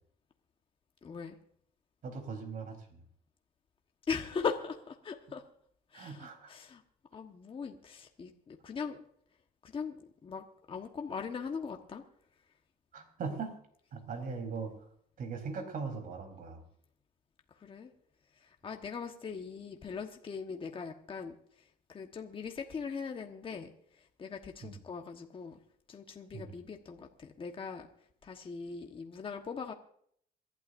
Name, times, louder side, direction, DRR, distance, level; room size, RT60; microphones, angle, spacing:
voice 1, 1.0-1.4 4.1-5.4 5.9-6.8 7.1-9.0 9.6-12.0 17.6-17.9 18.4-21.3 21.9-25.6 25.9-27.9 28.2-29.7, left 5 dB, 30° left, 3 dB, 1.3 m, -40 dB
voice 2, 2.0-3.0 5.9-6.5 12.9-13.6 13.9-14.7 15.2-16.6 24.6-24.7 26.3-26.5, right 5 dB, 55° right, 5 dB, 3.9 m, -40 dB
27.0 x 12.0 x 2.6 m, 0.64 s
cardioid pair, 110°, 17 cm